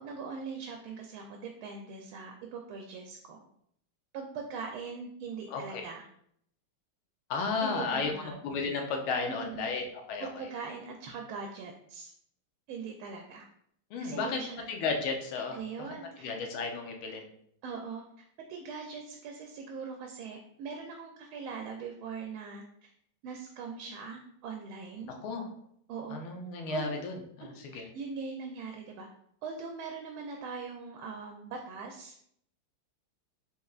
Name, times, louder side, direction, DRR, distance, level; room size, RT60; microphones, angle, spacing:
voice 1, 0.0-3.4 4.1-6.0 7.6-8.4 9.3-9.7 10.2-12.1 12.7-13.5 14.0-14.7 15.5-16.3 17.6-18.0 18.5-22.9 23.2-25.1 25.9-26.2 26.7-26.9 27.4-29.1 29.4-32.2, right 5 dB, 80° right, 2 dB, 1.4 m, -41 dB
voice 2, 5.5-5.8 7.3-10.5 13.9-14.4 14.7-15.6 16.2-17.2 25.1-25.5 26.1-27.8, left 4 dB, 80° left, 3 dB, 1.5 m, -33 dB
4.2 x 3.5 x 2.4 m, 0.69 s
omnidirectional pair, 2.4 m